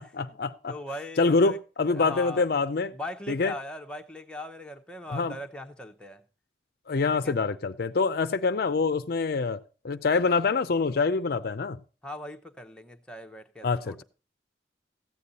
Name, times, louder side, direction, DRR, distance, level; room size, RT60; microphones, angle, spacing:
voice 1, 0.2-0.7 1.2-2.9 3.3-3.5 5.1-5.4 6.9-9.6 9.8-11.8 13.6-14.0, left 4 dB, 55° left, 0.5 m, -25 dB
voice 2, 0.7-1.6 1.9-2.5 2.9-6.2 7.2-7.4 12.0-14.0, left 1 dB, 5° left, 0.8 m, -40 dB
14.5 x 8.4 x 4.0 m
head